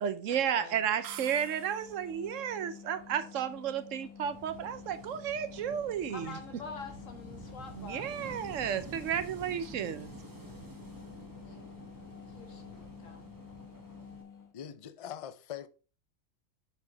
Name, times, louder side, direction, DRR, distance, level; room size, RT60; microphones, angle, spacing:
voice 1, 0.0-6.4 7.8-10.1, right 8 dB, 80° right, 1.1 m, -33 dB
sound 1, 1.0-14.5, left 6 dB, 15° left, 0.9 m, -50 dB
sound 2, 1.0-2.1, right 10 dB, 65° right, 0.8 m, -46 dB
Wind / Waves surf, 4.2-14.2, right 1 dB, 15° right, 1.0 m, -49 dB
voice 2, 6.1-8.7 11.4-11.7 12.3-13.3, left 4 dB, 85° left, 1.7 m, -47 dB
voice 3, 14.5-15.7, left 9 dB, 55° left, 0.3 m, -42 dB
6.7 x 4.9 x 4.5 m
omnidirectional pair, 1.3 m